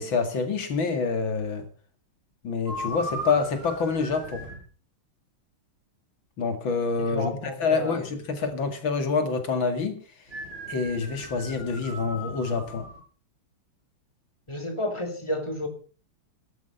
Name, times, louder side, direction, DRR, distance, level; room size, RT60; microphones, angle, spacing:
voice 1, 0.0-1.7 2.4-4.5 6.4-10.0 10.7-12.9, left 4 dB, 70° left, 2.9 m, -27 dB
sound 1, 2.7-4.6 10.3-13.0, right 1 dB, 25° right, 6.7 m, -37 dB
voice 2, 7.0-8.0 14.5-15.7, left 1 dB, 15° left, 3.2 m, -31 dB
13.5 x 12.5 x 5.6 m
omnidirectional pair, 2.3 m